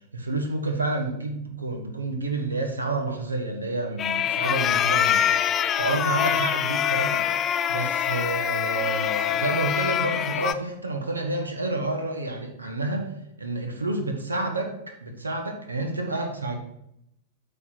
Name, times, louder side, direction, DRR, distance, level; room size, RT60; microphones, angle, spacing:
voice 1, 0.1-5.2 5.8-7.3 7.7-13.1 13.4-14.7 15.0-16.5, right 2 dB, 80° right, 3 dB, 1.3 m, -29 dB
sound 1, 4.0-10.5, left 9 dB, 25° left, 0.3 m, -24 dB
8.4 x 3.6 x 5.6 m, 0.77 s
figure-of-eight pair, 95°, 0 cm